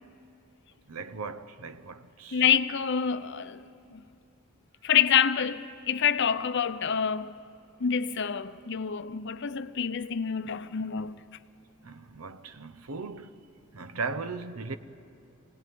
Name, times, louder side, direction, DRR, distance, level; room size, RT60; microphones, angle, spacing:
voice 1, 0.9-2.4 11.8-13.3 13.7-14.8, right 4 dB, 85° right, 0.8 m, -37 dB
voice 2, 2.3-3.6 3.9-4.0 4.8-7.3 7.8-11.2, left 8 dB, 55° left, 0.6 m, -27 dB
24.5 x 18.0 x 9.3 m
head